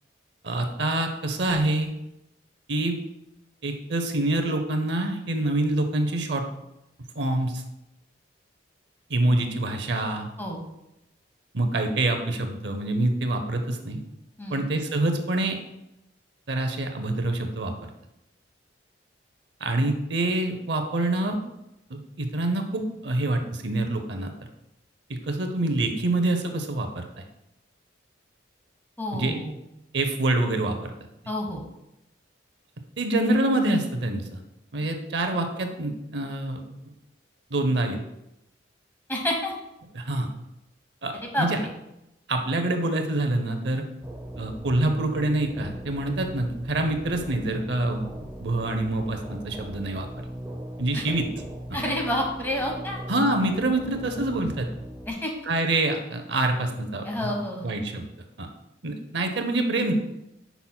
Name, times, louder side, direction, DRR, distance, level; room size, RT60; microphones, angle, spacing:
voice 1, 0.4-1.9 2.7-3.0 3.6-6.4 7.2-7.6 9.1-10.3 11.5-14.0 14.5-15.6 16.5-17.7 19.6-21.4 21.9-24.3 25.1-27.2 29.1-29.4 29.9-30.9 33.0-34.4 34.7-36.7 37.5-38.0 39.9-40.3 41.0-41.6 42.3-43.8 44.4-48.1 48.4-50.1 50.8-51.3 53.1-54.7 55.5-57.3 57.6-58.1 58.4-58.5 58.8-59.9, right 2 dB, 60° right, 5 dB, 0.7 m, -26 dB
voice 2, 29.0-29.6 31.3-31.6 39.1-39.5 41.2-41.5 50.9-51.1 51.7-53.0 55.1-55.3 57.0-57.7, left 1 dB, 10° left, 0 dB, 1.1 m, -29 dB
sound 1, 44.0-55.1, right 1 dB, 15° right, 0.6 m, -39 dB
8.1 x 5.7 x 2.3 m, 0.87 s
head